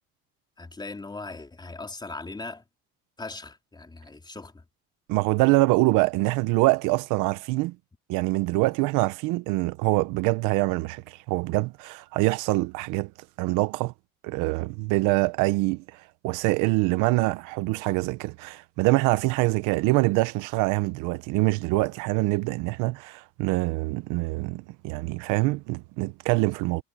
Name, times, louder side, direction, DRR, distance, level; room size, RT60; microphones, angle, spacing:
voice 1, 0.6-2.6 3.2-4.6, left 3 dB, 15° left, 3.8 m, -39 dB
voice 2, 5.1-7.8 8.1-13.1 13.4-13.9 14.2-26.8, right 21 dB, 90° right, 0.9 m, -25 dB
cardioid pair, 125°, 30 cm